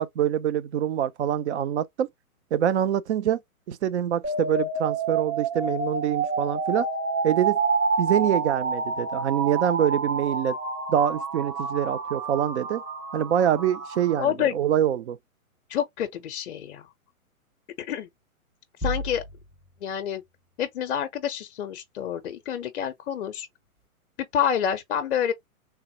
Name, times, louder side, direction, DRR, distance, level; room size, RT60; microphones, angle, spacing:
voice 1, 0.0-2.1 2.5-3.4 3.7-6.9 7.2-7.6 8.0-10.6 10.9-12.8 13.1-15.2, right 10 dB, 50° right, 0.5 m, -25 dB
sound 1, 4.2-14.2, right 4 dB, 90° right, 1.7 m, -28 dB
voice 2, 14.2-14.5 15.7-16.9 17.8-18.1 18.8-19.2 19.8-20.2 20.6-23.5 24.3-25.3, left 9 dB, 50° left, 0.5 m, -28 dB
sound 2, 18.8-19.8, equal, 5° right, 0.6 m, -32 dB
3.4 x 2.0 x 2.7 m
hypercardioid pair, 130°, 43 cm